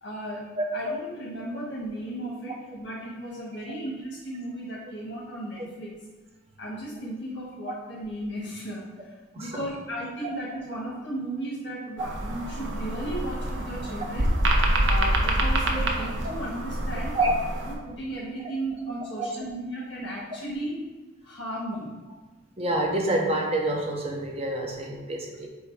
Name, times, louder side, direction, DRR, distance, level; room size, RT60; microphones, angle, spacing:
voice 1, 0.0-5.9 6.6-14.3 14.8-17.2 17.7-20.8 21.2-21.9, right 1 dB, 80° left, -6 dB, 1.6 m, -35 dB
voice 2, 9.3-9.7 12.0-12.1 15.7-16.3 17.1-17.3 19.2-19.4 22.6-25.5, right 1 dB, 30° right, 0 dB, 0.7 m, -28 dB
sound 1, 12.0-17.7, right 1 dB, 75° right, 0.9 m, -26 dB
7.9 x 2.7 x 4.8 m, 1.2 s
head